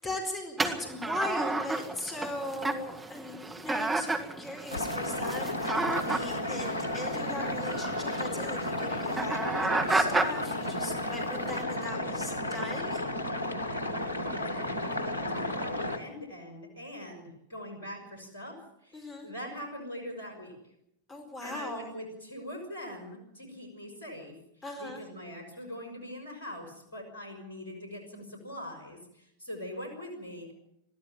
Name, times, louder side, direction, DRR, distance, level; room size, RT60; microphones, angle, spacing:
voice 1, 0.0-13.0 18.9-19.3 21.1-21.9 24.6-25.0, left 1 dB, 20° left, 3 dB, 4.5 m, -39 dB
sound 1, 0.6-11.6, right 3 dB, 15° right, 1.9 m, -33 dB
sound 2, 4.7-16.0, left 1 dB, 90° right, 1.8 m, -33 dB
voice 2, 13.7-20.5 21.4-24.3 24.8-30.5, equal, 70° left, 3 dB, 5.9 m, -43 dB
22.0 x 14.0 x 9.0 m, 0.80 s
figure-of-eight pair, 90°, 0 cm